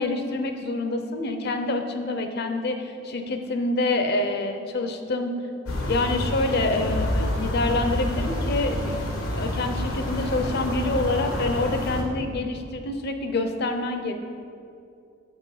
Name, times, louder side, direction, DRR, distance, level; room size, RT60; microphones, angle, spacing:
voice 1, 0.0-5.4 5.9-8.9 9.3-14.1, left 2 dB, 50° left, 6 dB, 0.6 m, -26 dB
sound 1, 5.7-12.0, left 1 dB, 90° left, 1.3 m, -28 dB
7.1 x 6.2 x 4.9 m, 2.5 s
head